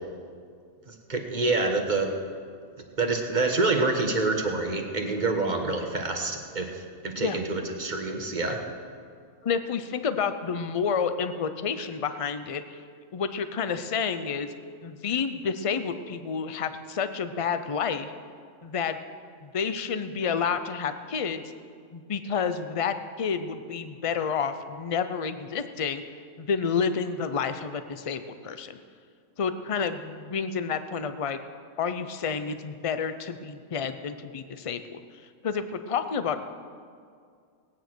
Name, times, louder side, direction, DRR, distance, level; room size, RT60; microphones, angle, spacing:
voice 1, 0.9-2.1 3.0-8.7, right 3 dB, 35° right, 3 dB, 1.3 m, -27 dB
voice 2, 9.4-12.8 13.1-14.5 14.8-18.1 18.6-19.0 19.4-21.4 21.9-26.0 26.4-28.8 29.4-31.4 31.8-35.0 35.4-36.5, left 6 dB, 60° left, 10 dB, 0.3 m, -29 dB
18.0 x 9.3 x 6.2 m, 2.2 s
omnidirectional pair, 1.5 m